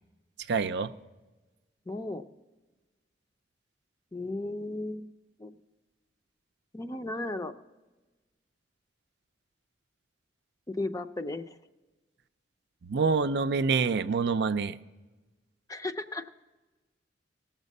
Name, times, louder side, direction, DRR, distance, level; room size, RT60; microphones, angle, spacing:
voice 1, 0.5-0.9 12.8-14.8, right 5 dB, 65° right, 11 dB, 0.5 m, -26 dB
voice 2, 1.9-2.2 4.1-5.1 5.4-5.5 6.7-7.5 10.7-11.6 15.7-16.3, left 2 dB, 20° left, 9 dB, 0.5 m, -35 dB
18.0 x 7.4 x 5.3 m, 1.2 s
head